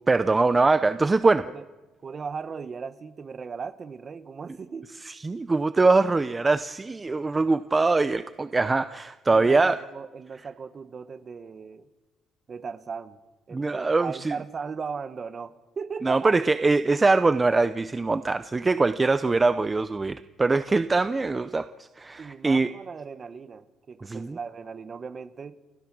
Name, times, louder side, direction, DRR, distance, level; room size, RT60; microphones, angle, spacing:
voice 1, 0.1-1.5 5.1-9.8 13.5-14.3 16.0-22.7 24.0-24.4, right 3 dB, 20° right, 12 dB, 0.6 m, -23 dB
voice 2, 2.0-4.9 9.3-11.9 12.5-13.2 13.5-16.4 22.2-25.6, right 5 dB, 35° right, 13 dB, 1.1 m, -37 dB
29.5 x 14.5 x 6.2 m, 1.2 s
cardioid pair, 115°, 0 cm